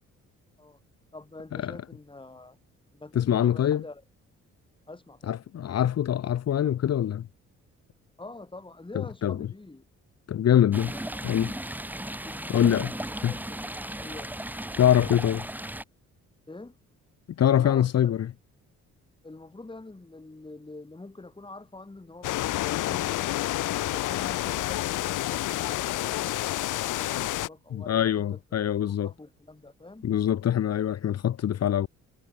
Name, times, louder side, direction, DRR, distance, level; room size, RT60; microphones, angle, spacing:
voice 1, 1.1-2.6 2.9-4.0 4.9-5.3 8.2-9.8 10.9-11.3 12.2-14.3 16.5-16.8 17.5-18.2 19.2-23.4 23.8-28.4 29.0-30.1, left 2 dB, 15° left, 6.9 m, -45 dB
voice 2, 3.1-3.8 5.3-7.3 8.9-9.5 10.3-10.9 11.2-11.5 12.5-12.9 13.2-13.3 14.8-15.4 17.4-18.3 22.9-23.0 27.7-29.1 30.0-31.9, left 10 dB, 55° left, 1.3 m, -24 dB
Stream, 10.7-15.8, right 1 dB, 5° right, 2.9 m, -36 dB
sound 1, 22.2-27.5, left 15 dB, 85° left, 1.7 m, -29 dB
cardioid pair, 90°, 30 cm